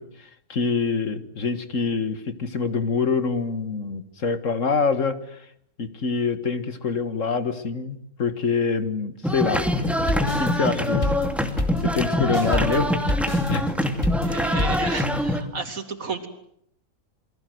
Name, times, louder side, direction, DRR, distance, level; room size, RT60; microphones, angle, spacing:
voice 1, 0.0-5.5 5.8-9.6 10.4-11.2 11.8-12.9 13.5-13.7, left 5 dB, 65° left, 12 dB, 2.1 m, -25 dB
sound 1, 9.2-15.4, left 1 dB, ahead, 2.6 m, -24 dB
sound 2, 9.8-14.9, left 1 dB, 25° left, 2.7 m, -28 dB
voice 2, 12.4-12.8 14.2-16.3, right 4 dB, 75° right, 8 dB, 3.2 m, -32 dB
28.5 x 22.5 x 8.0 m, 0.71 s
omnidirectional pair, 1.5 m